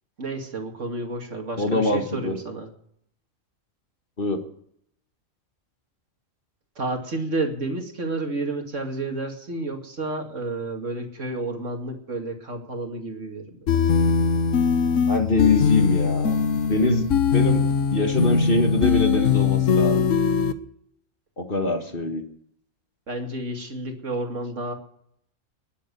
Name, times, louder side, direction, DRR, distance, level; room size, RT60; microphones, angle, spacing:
voice 1, 0.2-2.7 6.8-13.6 23.1-24.7, right 2 dB, 60° right, 3 dB, 2.7 m, -30 dB
voice 2, 1.6-2.4 4.2-4.4 15.1-16.3 16.7-17.1 17.3-17.6 17.9-20.1 21.4-22.2, left 2 dB, 40° left, 5 dB, 1.8 m, -23 dB
sound 1, 13.7-20.5, left 6 dB, 65° left, 1.3 m, -21 dB
21.0 x 8.5 x 6.8 m, 0.68 s
omnidirectional pair, 1.4 m